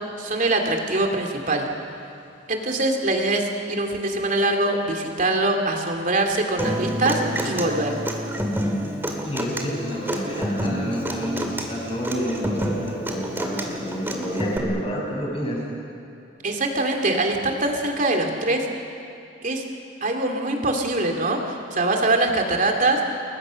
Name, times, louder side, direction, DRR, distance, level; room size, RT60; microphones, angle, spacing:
voice 1, 0.2-1.6 2.5-8.0 16.4-18.7 19.4-19.6 20.0-23.0, right 2 dB, 45° right, 2 dB, 3.0 m, -23 dB
Human voice / Acoustic guitar, 6.6-14.6, equal, 10° right, 2.6 m, -28 dB
voice 2, 9.2-15.6, equal, 30° left, -3 dB, 7.2 m, -29 dB
29.5 x 22.0 x 6.5 m, 2.8 s
head